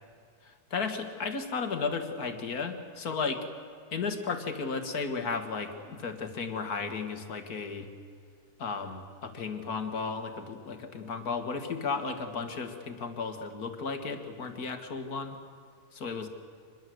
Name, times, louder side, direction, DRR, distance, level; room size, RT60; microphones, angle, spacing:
voice 1, 0.4-3.5 3.9-7.9 8.6-15.4 15.9-16.3, left 4 dB, 65° left, 6 dB, 2.2 m, -34 dB
24.5 x 21.5 x 7.9 m, 2.2 s
omnidirectional pair, 1.7 m